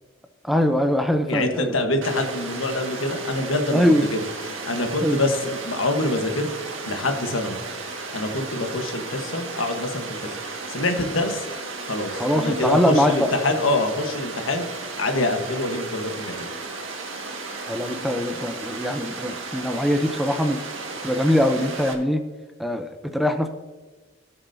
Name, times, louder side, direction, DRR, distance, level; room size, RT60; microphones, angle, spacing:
voice 1, 0.4-1.7 3.7-4.0 5.0-5.2 12.1-13.3 17.7-20.6 21.0-22.2 22.6-23.5, equal, ahead, 6 dB, 0.6 m, -22 dB
voice 2, 1.3-4.2 4.7-6.5 6.9-7.6 8.1-10.4 10.7-11.5 11.9-14.7 15.0-16.5, left 2 dB, 85° left, 5 dB, 1.3 m, -25 dB
Water, 2.0-21.9, right 3 dB, 80° right, 1.7 m, -34 dB
17.0 x 7.1 x 2.7 m, 1.3 s
head